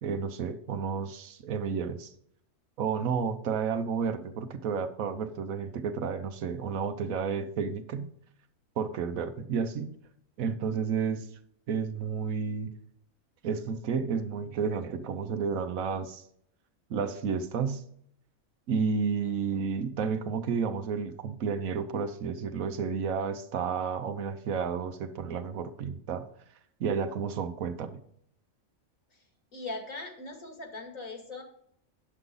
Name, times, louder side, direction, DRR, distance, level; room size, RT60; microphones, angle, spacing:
voice 1, 0.0-2.1 2.8-8.1 8.8-9.9 10.4-11.3 11.7-12.7 13.4-16.2 16.9-17.8 18.7-26.2 26.8-28.0, right 6 dB, 90° right, 9 dB, 1.3 m, -31 dB
voice 2, 29.5-31.4, left 2 dB, 75° left, 2 dB, 2.7 m, -40 dB
9.8 x 8.1 x 3.8 m, 0.68 s
omnidirectional pair, 1.4 m